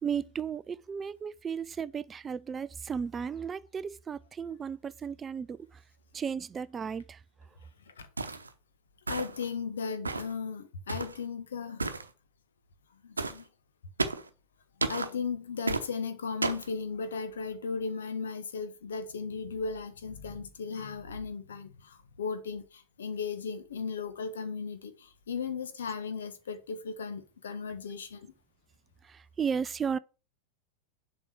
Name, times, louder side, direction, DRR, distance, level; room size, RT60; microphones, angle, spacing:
voice 1, 0.0-5.8 6.1-7.2 29.0-30.0, right 7 dB, 20° right, 0.3 m, -34 dB
sound 1, 8.2-8.5 9.1-9.5 10.1-10.4 10.9-11.2 11.8-12.1 13.2-13.4 14.0-14.3 14.8-15.1 15.7-15.9 16.4-16.7, right 3 dB, 80° right, 0.8 m, -32 dB
voice 2, 9.1-11.9 13.0-13.5 14.9-28.3, left 5 dB, 65° left, 1.4 m, -36 dB
7.3 x 5.0 x 6.1 m
figure-of-eight pair, 90°, 0 cm